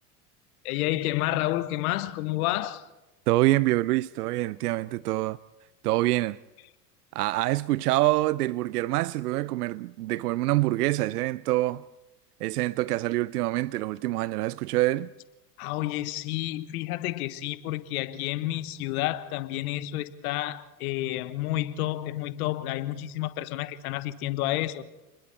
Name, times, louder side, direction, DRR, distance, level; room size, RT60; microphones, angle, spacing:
voice 1, 0.6-2.9 15.6-24.8, left 15 dB, 60° left, 1.4 m, -30 dB
voice 2, 3.3-5.4 5.8-6.4 7.1-11.8 12.4-15.1, right 17 dB, 70° right, 0.6 m, -26 dB
29.5 x 21.0 x 4.3 m
hypercardioid pair, 90°, 48 cm